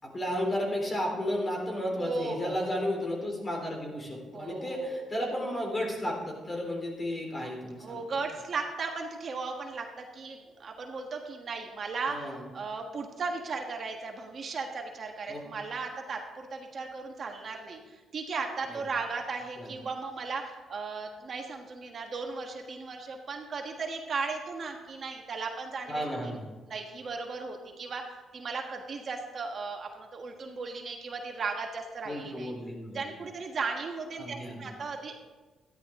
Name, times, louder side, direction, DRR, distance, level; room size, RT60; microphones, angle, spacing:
voice 1, 0.0-8.0 12.1-12.4 15.3-15.4 18.7-18.8 19.6-19.7 25.9-26.5 32.1-33.0 34.2-34.7, equal, 25° left, 0 dB, 3.8 m, -33 dB
voice 2, 2.0-2.8 4.3-5.0 7.8-26.4 26.6-32.5 32.9-35.2, right 4 dB, 50° right, 2 dB, 1.5 m, -36 dB
13.0 x 10.5 x 3.7 m, 1.2 s
cardioid pair, 90°, 0 cm